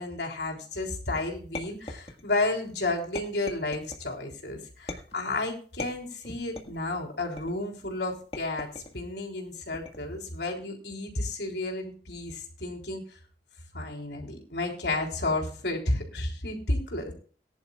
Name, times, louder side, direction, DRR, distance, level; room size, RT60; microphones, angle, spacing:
voice 1, 0.0-8.7 8.9-13.0 13.7-17.1, left 2 dB, 75° left, 2 dB, 3.7 m, -32 dB
sound 1, 1.5-2.5 3.1-4.1 4.9-5.3 5.8-6.8 7.4-7.8 8.3-9.0 9.7-10.2, left 2 dB, 35° left, 1.7 m, -40 dB
20.0 x 11.0 x 2.4 m, 0.41 s
head